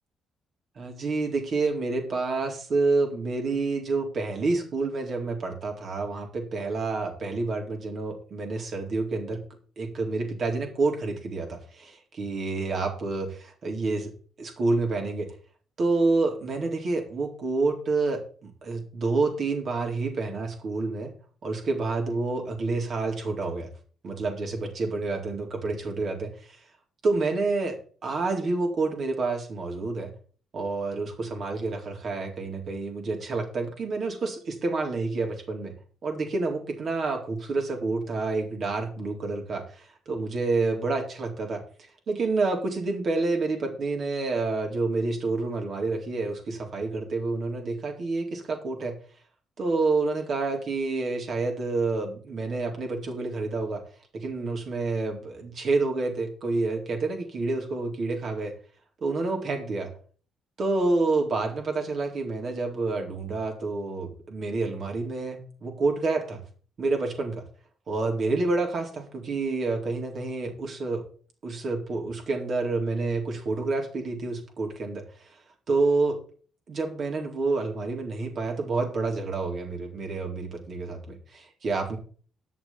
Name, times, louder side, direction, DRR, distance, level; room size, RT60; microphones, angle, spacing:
voice 1, 0.8-9.4 9.8-14.1 14.4-15.3 15.8-21.1 21.4-23.7 24.0-26.6 27.0-30.1 30.5-35.7 36.0-49.0 49.6-53.8 54.1-58.5 59.0-59.9 60.6-66.4 66.8-67.4 67.9-71.0 71.4-75.4 75.7-76.2 76.7-82.0, right 3 dB, 55° right, 2 dB, 3.8 m, -28 dB
9.8 x 6.6 x 7.3 m, 0.41 s
cardioid pair, 90°, 0 cm